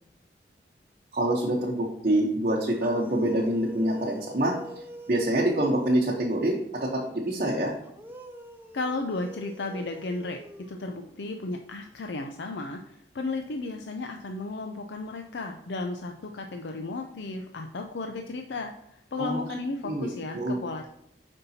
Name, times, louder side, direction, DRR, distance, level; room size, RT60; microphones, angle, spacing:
voice 1, 1.1-4.6 5.1-7.7 19.2-19.4 19.8-20.6, right 1 dB, 45° right, -3 dB, 0.9 m, -26 dB
sound 1, 2.7-6.5 7.8-11.4, right 1 dB, 10° right, 0.5 m, -45 dB
voice 2, 8.7-10.4 10.7-20.9, left 3 dB, 75° left, 4 dB, 0.5 m, -34 dB
7.9 x 5.3 x 2.8 m, 0.78 s
head